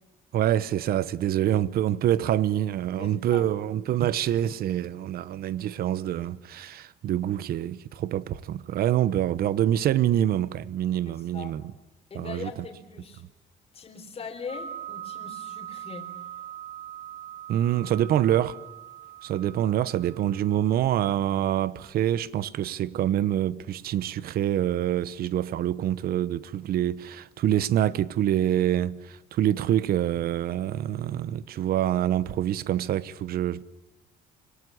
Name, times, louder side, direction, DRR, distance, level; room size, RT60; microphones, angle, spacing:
voice 1, 0.3-11.7 12.1-12.5 17.5-18.6 19.2-33.6, right 11 dB, 65° right, 0.9 m, -26 dB
voice 2, 3.0-3.5 11.1-11.5 12.1-13.2 13.7-16.1, left 5 dB, 35° left, 3.7 m, -41 dB
sound 1, 14.5-20.6, right 10 dB, 45° right, 7.0 m, -41 dB
26.0 x 18.0 x 9.9 m
cardioid pair, 110°, 17 cm